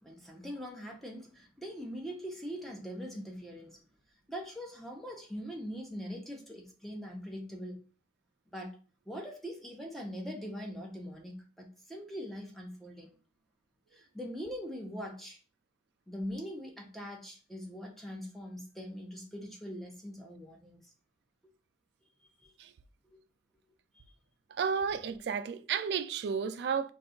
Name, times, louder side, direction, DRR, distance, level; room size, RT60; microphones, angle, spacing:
voice 1, 0.0-3.8 4.3-7.8 8.5-8.7 9.1-13.1 13.9-15.4 16.1-20.8 22.4-22.5 23.0-23.2 24.9-25.0, equal, ahead, 0.6 m, -42 dB
voice 2, 24.6-26.9, right 6 dB, 65° right, 0.3 m, -32 dB
2.6 x 2.2 x 3.7 m
head